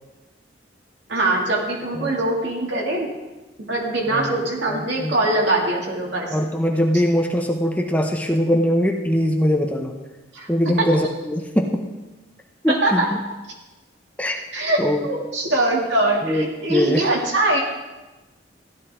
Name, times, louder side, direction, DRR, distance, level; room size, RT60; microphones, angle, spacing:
voice 1, 1.1-3.1 3.7-6.3 10.3-10.9 12.7-13.1 14.5-17.6, right 2 dB, 75° right, -2 dB, 2.6 m, -22 dB
voice 2, 4.1-4.4 4.7-5.2 6.3-10.0 10.5-11.8 12.6-13.2 14.2-14.4 14.8-15.0 16.2-17.1, equal, 10° left, 2 dB, 0.8 m, -22 dB
15.0 x 11.5 x 3.7 m, 1.1 s
head